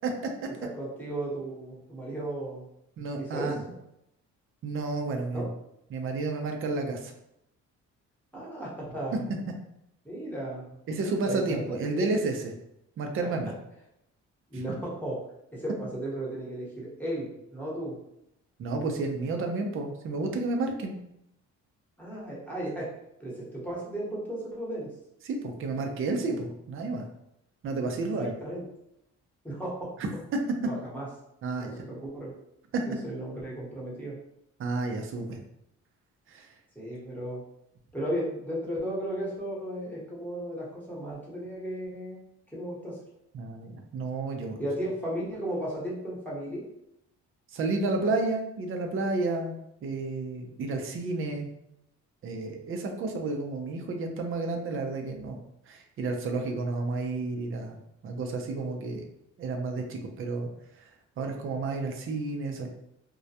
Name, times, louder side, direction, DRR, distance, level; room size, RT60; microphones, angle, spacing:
voice 1, 0.6-2.7 3.2-3.7 5.3-5.5 8.3-9.3 10.0-10.7 11.3-11.6 11.9-12.1 14.5-15.2 15.5-18.0 22.0-22.9 23.2-24.9 28.0-28.6 29.4-29.9 30.6-31.1 31.6-32.3 32.8-34.2 36.7-37.4 37.9-42.2 42.5-43.0 44.6-46.6 58.6-58.7, right 1 dB, 5° left, -6 dB, 1.0 m, -35 dB
voice 2, 3.0-3.6 4.6-5.5 5.9-7.1 10.9-12.5 13.0-13.5 14.5-14.8 18.6-21.0 25.2-27.1 27.6-28.3 30.0-30.4 31.4-31.8 32.7-32.8 34.6-35.4 36.3-36.5 43.3-44.6 47.5-49.5 49.8-51.5 52.2-55.4 55.7-57.8 58.0-59.0 59.4-60.5 60.7-60.9 61.2-62.7, right 3 dB, 45° right, 3 dB, 0.5 m, -31 dB
2.2 x 2.1 x 2.7 m, 0.80 s
cardioid pair, 90°, 30 cm